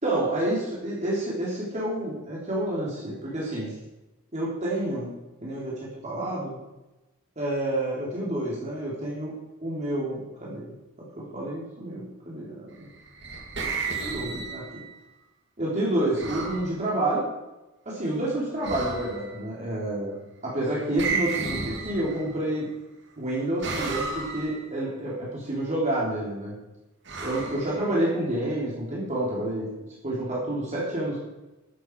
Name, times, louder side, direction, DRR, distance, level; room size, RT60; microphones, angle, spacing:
voice 1, 0.0-3.7 4.3-5.1 5.4-6.6 7.3-9.3 9.6-10.7 11.2-12.6 13.9-14.7 15.6-17.2 17.8-20.1 20.4-22.7 23.2-26.5 27.2-29.7 30.0-31.2, right 1 dB, 35° right, -6 dB, 3.4 m, -29 dB
sound 1, 12.9-14.9 16.2-16.7 18.6-19.4 21.0-22.5 23.6-24.6 27.1-28.3, right 4 dB, 60° right, 2.6 m, -33 dB
12.0 x 10.5 x 4.7 m, 1.0 s
head